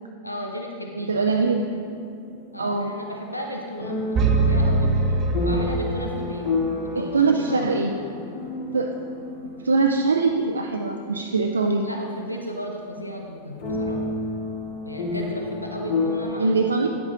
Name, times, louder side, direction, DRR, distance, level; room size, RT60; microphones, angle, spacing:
voice 1, 0.2-1.2 2.5-6.5 6.9-7.7 11.8-14.0 14.8-16.9, equal, 90° left, 1 dB, 0.7 m, -35 dB
voice 2, 1.0-1.7 2.6-2.9 7.0-8.0 8.7-9.0 9.6-11.9 16.4-16.9, right 4 dB, 75° right, 3 dB, 0.4 m, -22 dB
sound 1, 1.5-2.8 3.8-12.6 12.9-13.0 13.6-16.3, left 3 dB, 45° left, 1.9 m, -31 dB
sound 2, 4.1-6.3, right 3 dB, 30° right, 0.7 m, -22 dB
9.8 x 8.4 x 2.9 m, 2.4 s
figure-of-eight pair, 90°, 0 cm